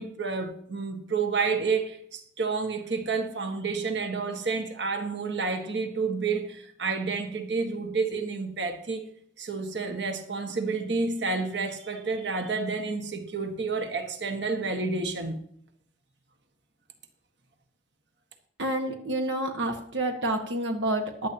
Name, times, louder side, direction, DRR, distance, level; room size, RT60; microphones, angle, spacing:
voice 1, 0.0-9.0 9.4-15.4, right 4 dB, 70° right, 1.6 m, -30 dB
voice 2, 18.6-21.3, right 1 dB, 85° right, 1.5 m, -29 dB
15.5 x 11.5 x 2.9 m
head